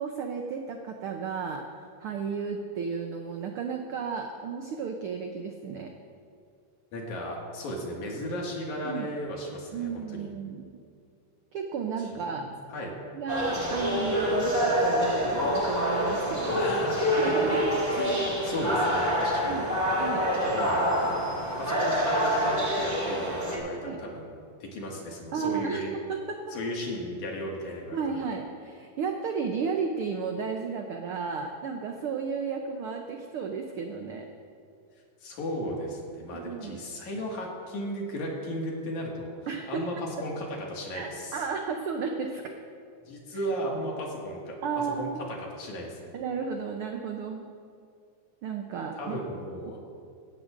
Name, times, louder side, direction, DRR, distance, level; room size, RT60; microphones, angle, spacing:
voice 1, 0.0-5.9 8.8-9.1 9.7-10.6 11.5-12.4 13.1-16.6 17.1-17.8 19.5-19.7 20.0-20.2 23.8-24.0 25.3-26.5 27.9-34.3 36.3-36.8 39.5-39.9 40.9-42.5 43.3-43.4 44.6-45.2 46.1-47.5 48.4-49.2 49.7-49.8, right 5 dB, 85° right, 3 dB, 1.2 m, -33 dB
voice 2, 6.9-10.3 12.4-12.9 16.5-17.5 17.9-19.9 20.4-21.2 21.6-24.3 24.6-25.9 26.5-28.2 35.2-39.3 39.7-41.4 43.1-44.6 45.0-46.1 48.9-49.8, equal, 75° left, -2 dB, 3.3 m, -35 dB
sound 1, 13.3-23.6, equal, 15° right, 1.7 m, -26 dB
16.0 x 15.5 x 2.6 m, 2.3 s
omnidirectional pair, 3.4 m